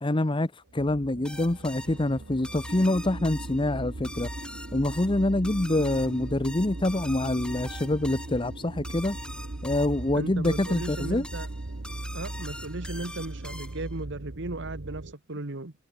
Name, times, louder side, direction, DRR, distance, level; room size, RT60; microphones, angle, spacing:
voice 1, 0.0-4.3 4.7-9.2 9.6-11.3, left 1 dB, 25° left, 0.9 m, -26 dB
sound 1, 0.7-15.1, right 2 dB, 85° right, 1.2 m, -39 dB
sound 2, 1.2-14.0, left 1 dB, 5° left, 6.0 m, -43 dB
sound 3, 2.7-14.0, equal, 35° right, 6.3 m, -46 dB
voice 2, 10.1-11.5 12.1-15.7, right 2 dB, 60° right, 1.6 m, -36 dB
head